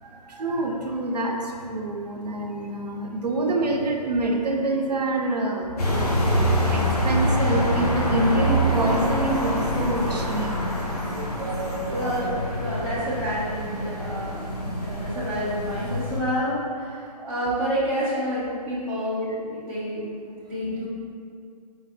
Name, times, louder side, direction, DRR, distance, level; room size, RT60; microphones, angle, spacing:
voice 1, 0.0-6.0 6.5-12.3 14.9-15.0 17.2-17.5, right 2 dB, 75° right, 1 dB, 0.5 m, -27 dB
sound 1, 5.8-16.2, equal, 65° left, 0.9 m, -25 dB
voice 2, 11.9-20.1 20.4-20.9, equal, 5° right, -11 dB, 0.5 m, -29 dB
4.6 x 3.3 x 2.2 m, 2.4 s
figure-of-eight pair, 140°, 21 cm